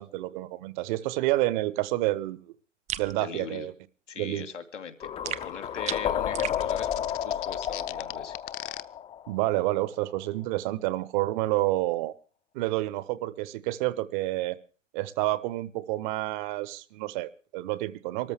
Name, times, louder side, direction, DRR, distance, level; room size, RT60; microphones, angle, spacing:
voice 1, 0.0-2.5 3.0-3.7 4.2-4.5 9.3-12.1 12.5-14.6 14.9-18.3, right 17 dB, 40° right, 17 dB, 1.1 m, -29 dB
sound 1, 2.9-3.1 5.2-6.6, right 12 dB, 20° right, 0.7 m, -35 dB
voice 2, 3.2-3.7 4.1-8.4, left 6 dB, 75° left, 8 dB, 2.6 m, -40 dB
sound 2, 5.0-9.9, left 10 dB, 15° left, 0.7 m, -32 dB
sound 3, 6.5-8.8, left 18 dB, 45° left, 1.0 m, -38 dB
24.5 x 13.5 x 3.5 m, 0.39 s
figure-of-eight pair, 105°, 37 cm